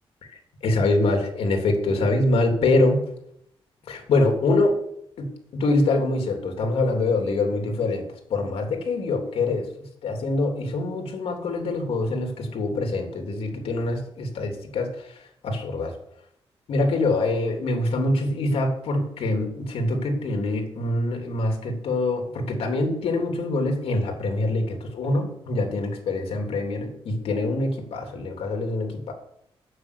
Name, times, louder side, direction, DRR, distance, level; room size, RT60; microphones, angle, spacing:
voice 1, 0.6-3.0 3.9-4.8 5.2-9.7 10.0-14.9 15.4-15.9 16.7-29.1, left 2 dB, 75° left, 3 dB, 3.2 m, -24 dB
9.8 x 8.2 x 8.5 m, 0.73 s
wide cardioid pair, 135°, 10 cm